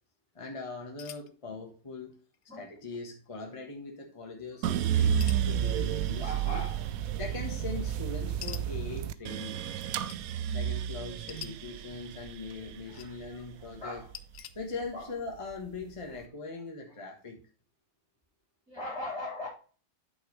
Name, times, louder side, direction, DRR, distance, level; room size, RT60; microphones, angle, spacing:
voice 1, 0.3-2.1 2.5-5.2 5.4-6.6 7.2-9.7 10.5-14.0 14.5-17.4, left 3 dB, 25° left, 2 dB, 1.4 m, -41 dB
sound 1, 1.0-1.3 2.3-2.4 2.8-3.1 5.2-5.5 6.8-6.9 8.4-8.6 10.1-10.2 11.3-11.5 12.6-13.1 14.1-14.5, left 10 dB, 65° left, 0.9 m, -44 dB
voice 2, 4.6-5.4 6.2-7.4 12.9-14.2 14.9-15.2 16.0-16.2 16.5-17.0 18.7-19.5, left 1 dB, 5° left, -5 dB, 3.6 m, -42 dB
sound 2, 4.6-14.8 15.3-16.1, right 9 dB, 80° right, 1.0 m, -31 dB
8.2 x 6.3 x 3.1 m, 0.40 s
omnidirectional pair, 1.5 m